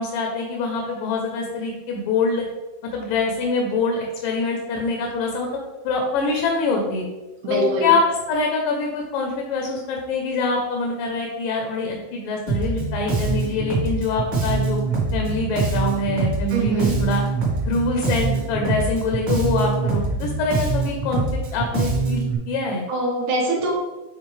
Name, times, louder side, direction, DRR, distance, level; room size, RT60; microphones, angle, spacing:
voice 1, 0.0-2.5 2.9-5.5 5.8-7.0 7.5-8.0 8.3-14.8 15.1-17.2 17.7-21.2 21.5-22.8, left 3 dB, 85° left, 1 dB, 2.4 m, -24 dB
voice 2, 7.4-7.9 16.5-17.0 22.9-23.7, right 2 dB, 70° right, -1 dB, 2.0 m, -23 dB
Bass guitar, 12.5-22.4, right 3 dB, 50° right, 1.4 m, -24 dB
7.5 x 3.9 x 3.2 m, 1.1 s
omnidirectional pair, 3.8 m